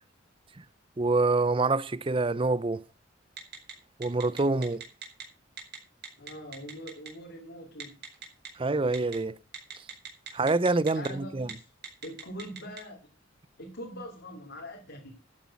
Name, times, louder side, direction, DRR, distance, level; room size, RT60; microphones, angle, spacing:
voice 1, 1.0-2.8 4.0-4.8 8.6-9.4 10.3-11.5, right 3 dB, 25° right, 0.6 m, -26 dB
Telephone, 3.4-3.7 4.0-5.2 5.6-5.8 6.0-7.1 7.8-8.5 8.9-9.1 9.5-11.1 11.4-11.5 11.8-12.8, right 8 dB, 50° right, 5.0 m, -40 dB
voice 2, 6.2-8.0 10.9-11.7 12.0-13.0 13.6-15.1, equal, 55° left, 3.1 m, -43 dB
13.0 x 9.3 x 6.0 m
head